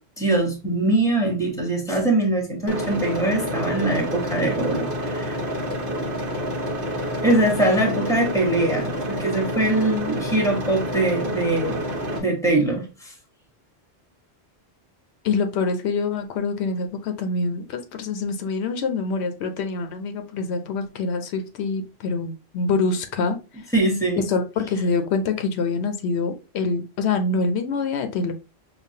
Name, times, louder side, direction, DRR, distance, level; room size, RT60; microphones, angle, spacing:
voice 1, 0.2-5.4 7.2-11.8 12.1-13.1 23.7-24.3, right 2 dB, 5° left, 1 dB, 0.9 m, -22 dB
sound 1, 2.7-12.2, equal, 55° right, 1.0 m, -28 dB
voice 2, 15.2-23.6 24.3-28.3, left 4 dB, 80° left, 8 dB, 0.8 m, -25 dB
5.1 x 2.2 x 2.6 m, 0.30 s
omnidirectional pair, 1.1 m